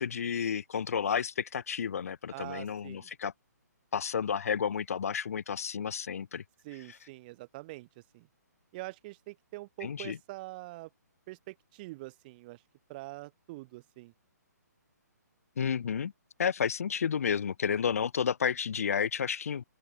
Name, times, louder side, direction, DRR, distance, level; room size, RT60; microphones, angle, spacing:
voice 1, 0.0-3.3 3.9-6.4 6.9-7.0 9.8-10.2 15.6-16.1 16.4-19.6, left 7 dB, 55° left, 2.6 m, -31 dB
voice 2, 2.3-3.1 6.6-7.9 8.1-8.3 8.7-10.9 11.3-12.6 12.9-14.1, right 21 dB, 30° right, 3.7 m, -44 dB
open air
figure-of-eight pair, 135°, 10 cm